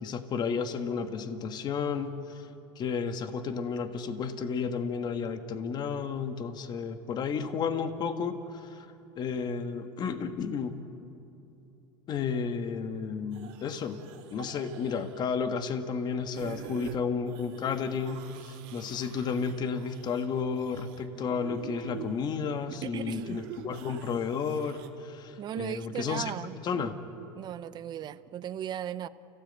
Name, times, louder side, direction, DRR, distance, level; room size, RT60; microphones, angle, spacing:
voice 1, 0.0-2.5 2.7-8.9 9.1-10.8 12.1-14.0 14.3-26.3 26.6-27.0, left 6 dB, 35° left, 1.6 m, -32 dB
sound 1, 13.3-15.2 16.3-17.0 17.3-24.9, right 9 dB, 70° right, 2.1 m, -46 dB
voice 2, 22.8-23.4 25.4-26.6 27.4-29.1, right 10 dB, 35° right, 0.8 m, -36 dB
28.5 x 16.5 x 9.0 m
supercardioid pair, 125°, 12 cm